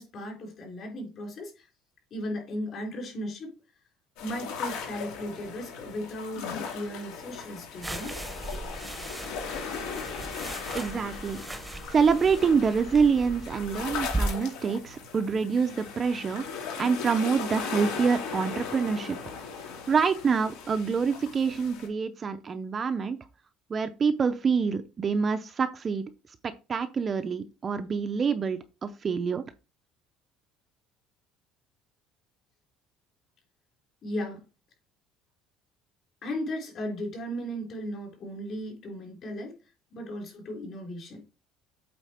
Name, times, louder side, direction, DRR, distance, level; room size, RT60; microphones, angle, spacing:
voice 1, 0.0-1.7 2.1-3.5 4.2-8.1 34.0-34.4 36.2-39.5 39.9-41.2, equal, 35° left, 3.4 m, -36 dB
sound 1, 4.2-21.9, left 6 dB, 80° left, 2.5 m, -38 dB
sound 2, 7.8-14.3, right 2 dB, 5° right, 0.8 m, -37 dB
voice 2, 10.7-11.4 11.9-16.5 16.8-19.2 19.9-23.2 23.7-26.1 26.4-29.4, right 5 dB, 25° right, 0.4 m, -26 dB
8.2 x 4.1 x 4.3 m
cardioid pair, 165°, 0 cm